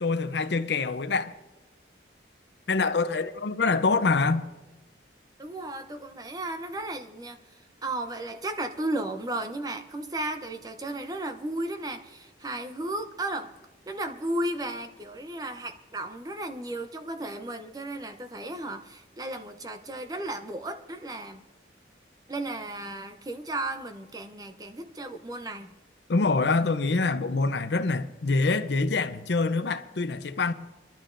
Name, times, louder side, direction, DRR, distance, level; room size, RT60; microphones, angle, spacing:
voice 1, 0.0-1.3 2.7-4.5 26.1-30.5, left 3 dB, 75° left, 0.6 m, -25 dB
voice 2, 5.4-7.4 7.8-13.5 13.9-21.4 22.3-25.7, right 1 dB, 20° right, 0.6 m, -34 dB
29.0 x 12.0 x 2.6 m
head